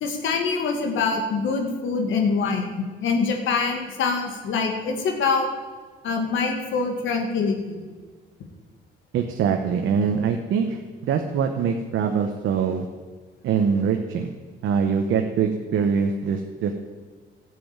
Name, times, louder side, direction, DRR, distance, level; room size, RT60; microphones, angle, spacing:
voice 1, 0.0-5.5 6.0-7.8, left 4 dB, 75° left, 2 dB, 2.1 m, -24 dB
voice 2, 9.1-12.8 13.4-14.3 14.6-16.8, right 6 dB, 80° right, 4 dB, 1.1 m, -23 dB
12.5 x 7.7 x 9.0 m, 1.4 s
cardioid pair, 90°, 20 cm